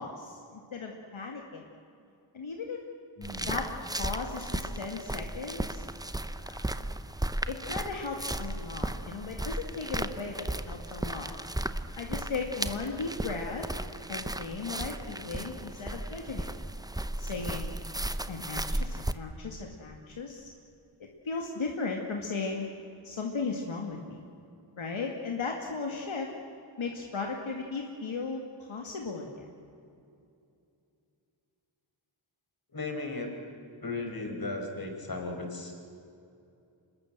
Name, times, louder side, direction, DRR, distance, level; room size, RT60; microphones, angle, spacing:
voice 1, 0.0-1.6 2.3-2.8 3.5-5.8 6.4-6.7 7.5-11.3 12.0-13.7 14.1-16.5 17.2-17.8 18.3-20.5 21.2-22.7 23.0-24.2 24.8-26.3 26.8-28.4 28.7-29.5, left 4 dB, 75° left, 1 dB, 2.3 m, -36 dB
voice 2, 3.2-3.5 32.7-33.3 33.8-35.8, left 2 dB, 45° left, 3 dB, 4.9 m, -36 dB
sound 1, 3.2-19.1, right 1 dB, 10° right, 0.8 m, -35 dB
26.0 x 21.0 x 7.7 m, 2.6 s
wide cardioid pair, 95°, 48 cm